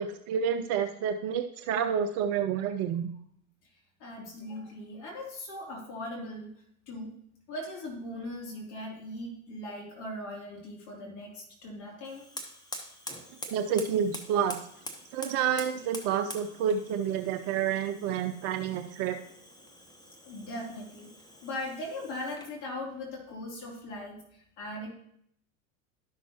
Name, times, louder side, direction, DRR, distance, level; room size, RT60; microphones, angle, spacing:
voice 1, 0.0-3.1 13.5-14.6 15.1-19.2, right 8 dB, 40° right, 7 dB, 0.5 m, -29 dB
voice 2, 3.7-6.5 6.9-7.1 7.5-12.3 20.2-21.1 21.4-24.9, left 1 dB, 45° left, -2 dB, 2.8 m, -39 dB
Fire, 12.0-22.6, left 1 dB, 10° left, 1.1 m, -46 dB
12.0 x 6.1 x 2.8 m, 0.69 s
figure-of-eight pair, 85°, 42 cm